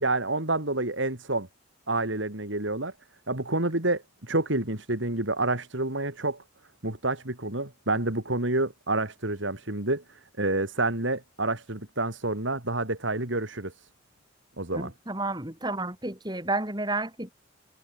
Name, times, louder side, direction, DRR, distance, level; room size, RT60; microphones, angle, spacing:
voice 1, 0.0-1.5 1.9-2.9 3.3-6.4 6.8-10.0 10.4-13.7 14.6-14.9, right 2 dB, 65° right, 3.3 m, -28 dB
voice 2, 14.7-17.3, right 2 dB, 20° right, 4.1 m, -31 dB
head